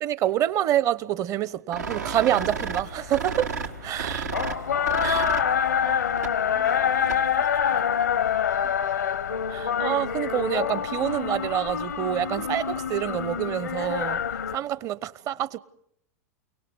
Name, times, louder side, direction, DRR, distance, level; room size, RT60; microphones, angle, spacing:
voice 1, 0.0-3.5 3.8-4.3 5.0-5.2 9.5-14.2 14.5-15.6, right 11 dB, 40° right, 0.9 m, -27 dB
sound 1, 1.7-7.4, right 5 dB, 85° right, 1.6 m, -34 dB
sound 2, 2.4-14.6, left 8 dB, 85° left, 0.9 m, -26 dB
voice 2, 4.4-5.0 5.8-8.8 14.9-15.5, right 11 dB, 70° right, 4.2 m, -48 dB
29.5 x 18.5 x 8.1 m
hypercardioid pair, 95°, 9 cm